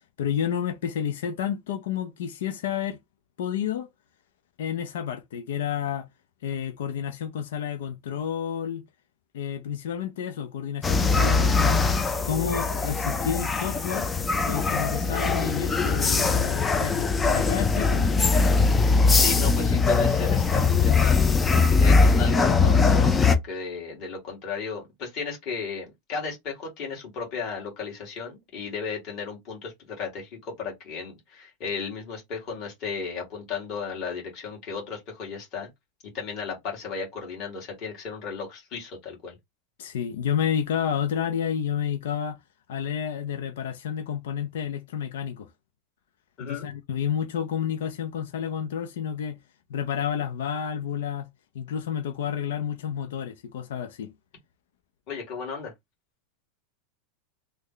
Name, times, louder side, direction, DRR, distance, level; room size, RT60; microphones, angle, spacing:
voice 1, 0.2-3.0 3.4-3.9 4.6-6.1 6.4-8.8 9.3-11.8 12.2-14.1 14.5-18.5 39.8-42.4 42.7-45.5 46.4-49.4 49.7-51.3 51.5-54.1, left 8 dB, 80° left, 0.5 m, -30 dB
sound 1, 10.8-23.4, left 4 dB, 10° left, 0.3 m, -21 dB
voice 2, 19.1-21.3 21.8-35.7 36.1-39.4 46.4-46.7 55.1-55.7, left 5 dB, 30° left, 1.8 m, -35 dB
3.2 x 2.1 x 3.8 m
supercardioid pair, 170°, 0 cm